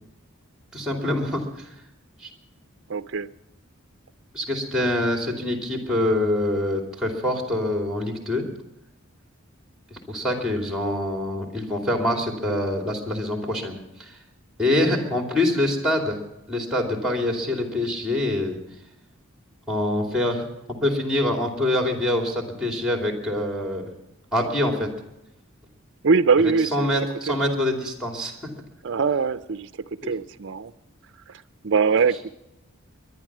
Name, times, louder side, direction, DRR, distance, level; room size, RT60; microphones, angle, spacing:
voice 1, 0.7-1.7 2.2-2.3 4.3-8.5 9.9-14.2 14.6-16.2 16.5-18.6 19.7-23.9 24.3-24.9 26.4-28.5 30.0-30.1, left 1 dB, 5° right, 2 dB, 2.7 m, -25 dB
voice 2, 2.9-3.3 12.5-12.6 26.0-26.9 27.3-27.4 28.8-29.7 30.1-30.7 31.6-32.3, right 5 dB, 55° right, 12 dB, 0.5 m, -22 dB
21.0 x 11.0 x 6.1 m, 0.89 s
head